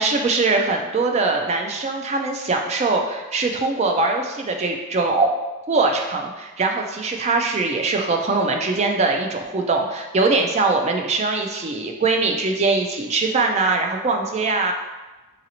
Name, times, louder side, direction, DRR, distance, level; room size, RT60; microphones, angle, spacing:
voice 1, 0.0-5.3 5.7-14.7, right 3 dB, 30° right, 3 dB, 0.3 m, -22 dB
3.9 x 2.6 x 2.8 m, 1.1 s
head